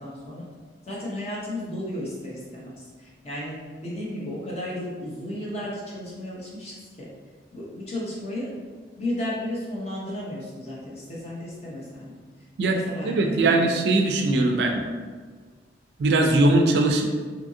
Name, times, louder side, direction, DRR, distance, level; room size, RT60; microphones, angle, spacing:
voice 1, 0.0-0.5 0.8-7.1 7.5-8.5 9.0-12.2 12.6-13.9, left 1 dB, 35° left, -6 dB, 0.7 m, -34 dB
voice 2, 12.6-14.8 16.0-17.0, right 2 dB, 65° right, 3 dB, 0.3 m, -21 dB
2.8 x 2.5 x 2.6 m, 1.5 s
head